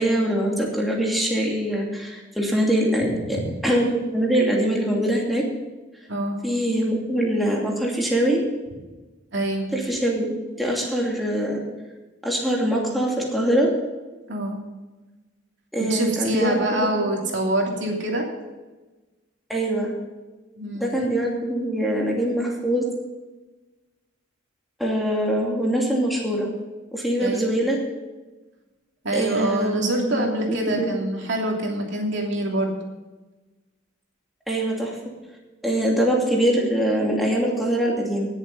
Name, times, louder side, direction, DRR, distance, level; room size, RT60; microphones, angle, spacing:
voice 1, 0.0-3.8 4.1-5.5 6.4-8.4 9.7-11.6 12.2-13.7 15.7-17.1 19.5-19.9 20.7-22.8 24.8-26.5 26.9-27.8 29.1-30.9 34.5-35.0 35.6-38.3, right 1 dB, ahead, -3 dB, 2.6 m, -23 dB
voice 2, 6.1-6.4 9.3-9.7 14.3-14.6 15.9-18.3 20.6-20.9 27.2-27.5 29.0-32.7, right 1 dB, 65° right, 0 dB, 2.9 m, -25 dB
18.5 x 7.4 x 5.3 m, 1.2 s
head